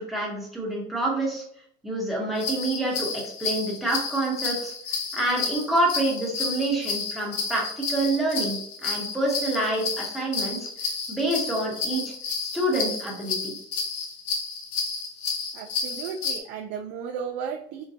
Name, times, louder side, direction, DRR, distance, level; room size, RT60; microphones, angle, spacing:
voice 1, 0.0-1.4 1.8-10.7 11.1-12.1 12.5-13.5, right 1 dB, ahead, -2 dB, 1.0 m, -27 dB
sound 1, 2.4-16.4, left 4 dB, 80° left, 0.8 m, -31 dB
voice 2, 15.5-17.8, right 7 dB, 70° right, 2 dB, 0.4 m, -34 dB
4.6 x 2.2 x 2.7 m, 0.68 s
cardioid pair, 135°, 19 cm